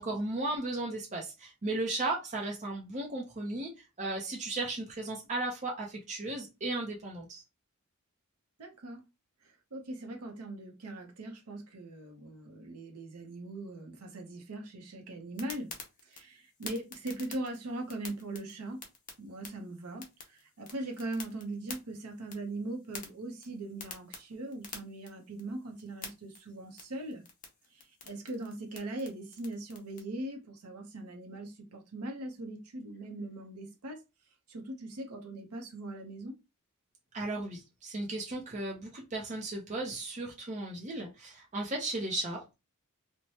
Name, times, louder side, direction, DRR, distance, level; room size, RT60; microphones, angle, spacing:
voice 1, 0.0-3.7 4.0-7.4 37.1-42.5, right 2 dB, 30° right, 0.6 m, -35 dB
voice 2, 8.6-9.0 9.4-15.7 16.0-18.8 19.2-27.2 27.7-34.0 34.5-36.4, right 2 dB, 85° right, 0.7 m, -40 dB
sound 1, 15.4-30.0, left 5 dB, 35° left, 0.7 m, -50 dB
3.1 x 2.1 x 2.8 m
head